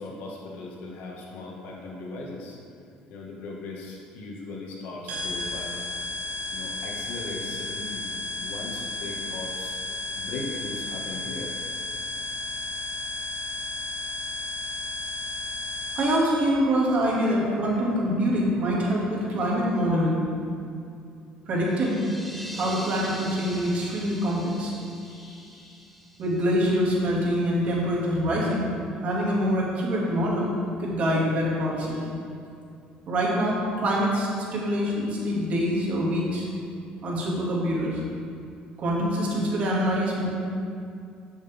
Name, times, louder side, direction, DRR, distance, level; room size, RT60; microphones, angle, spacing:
voice 1, 0.0-2.6 3.1-5.7 6.5-9.8 10.2-11.5 25.0-25.9, left 2 dB, 75° left, -2 dB, 1.9 m, -38 dB
sound 1, 5.1-16.5, left 2 dB, 70° right, 1.9 m, -33 dB
voice 2, 16.0-20.2 21.5-22.2 22.5-24.7 26.2-28.7 29.0-30.5 30.8-32.1 33.1-36.5 37.0-38.0 38.8-40.3, equal, 50° right, -4 dB, 2.4 m, -25 dB
sound 2, 21.6-27.2, equal, ahead, 0.8 m, -43 dB
12.5 x 6.4 x 3.6 m, 2.5 s
cardioid pair, 115°, 3 cm